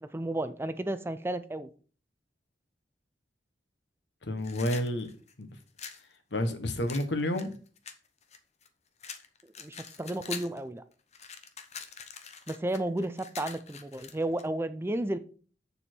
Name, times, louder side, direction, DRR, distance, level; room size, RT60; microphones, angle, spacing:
voice 1, 0.0-1.7 9.6-10.8 12.5-15.2, right 1 dB, 15° right, 11 dB, 0.5 m, -32 dB
voice 2, 4.2-5.1 5.4-5.5 6.3-7.5, left 1 dB, 80° left, 8 dB, 1.3 m, -30 dB
sound 1, 4.4-6.0 6.9-8.7 9.0-10.6 10.9-14.5, left 6 dB, 40° left, 0.9 m, -44 dB
7.0 x 7.0 x 4.5 m, 0.40 s
head